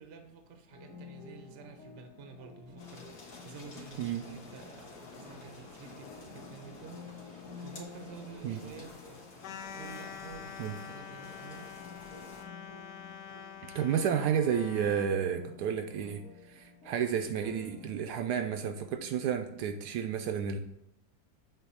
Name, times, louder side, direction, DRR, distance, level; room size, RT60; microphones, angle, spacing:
voice 1, 0.0-8.9 9.7-11.7, right 5 dB, 50° right, 6 dB, 0.8 m, -50 dB
sound 1, 0.7-19.7, left 4 dB, 45° left, 2.0 m, -52 dB
sound 2, 2.8-12.4, left 4 dB, 60° left, 1.7 m, -50 dB
sound 3, 9.4-15.2, left 7 dB, 75° left, 1.2 m, -46 dB
voice 2, 13.6-20.6, right 8 dB, 75° right, 6 dB, 1.1 m, -31 dB
7.6 x 2.7 x 5.5 m, 0.78 s
omnidirectional pair, 1.8 m